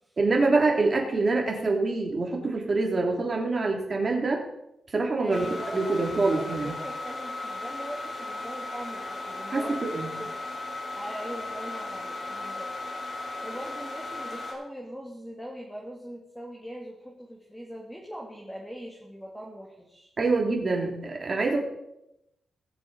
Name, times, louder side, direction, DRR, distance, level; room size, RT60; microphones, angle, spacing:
voice 1, 0.2-4.4 4.9-5.5 5.7-6.7 9.5-10.1 20.2-21.6, right 3 dB, 35° right, 0 dB, 2.9 m, -25 dB
voice 2, 5.2-9.8 10.2-10.3 11.0-12.7 13.4-20.1, equal, ahead, -2 dB, 2.2 m, -41 dB
sound 1, 5.3-14.5, left 2 dB, 50° left, 4.0 m, -36 dB
20.0 x 7.0 x 4.1 m, 0.85 s
cardioid pair, 100°, 0 cm